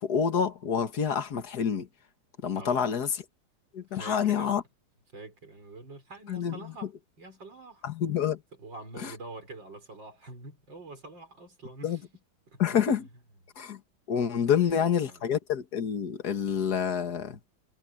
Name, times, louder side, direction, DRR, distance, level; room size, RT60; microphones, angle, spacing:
voice 1, 0.0-1.9 2.4-3.1 3.7-4.6 6.3-6.6 7.8-8.4 9.0-9.1 11.8-12.0 12.6-13.1 13.6-13.8 14.1-17.4, left 8 dB, 50° left, 2.1 m, -27 dB
voice 2, 2.6-3.0 3.9-4.6 5.1-7.9 8.6-12.1 12.5-13.0 14.4-15.2, right 2 dB, 60° right, 5.9 m, -46 dB
omnidirectional pair, 2.3 m